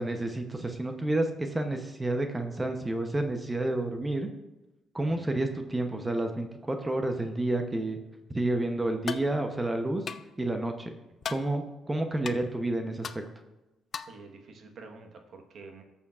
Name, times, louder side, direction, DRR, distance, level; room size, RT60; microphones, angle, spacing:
voice 1, 0.0-4.3 4.9-8.0 8.3-10.0 10.4-11.0 11.3-13.1, right 2 dB, 15° right, 5 dB, 0.8 m, -30 dB
sound 1, 9.1-9.3 10.1-10.3 11.2-11.5 12.3-12.4 13.0-13.2 13.9-14.2, left 6 dB, 50° left, 0.4 m, -35 dB
voice 2, 14.1-15.8, right 4 dB, 60° right, 4 dB, 1.3 m, -48 dB
14.0 x 7.1 x 2.5 m, 1.0 s
cardioid pair, 90°, 0 cm